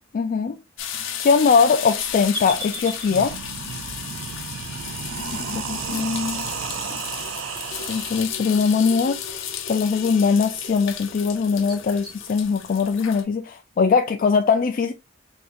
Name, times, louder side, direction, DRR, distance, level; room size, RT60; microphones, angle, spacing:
voice 1, 0.1-0.6 1.2-3.4 5.5-6.5 6.9-7.0 7.9-14.9, left 5 dB, 45° left, 0.3 m, -21 dB
sound 1, 0.8-13.2, left 8 dB, 70° left, 0.7 m, -34 dB
sound 2, 2.3-12.2, equal, 20° right, 1.5 m, -43 dB
sound 3, 2.5-2.6 3.0-8.2, right 8 dB, 70° right, 0.4 m, -33 dB
5.6 x 2.7 x 2.5 m
head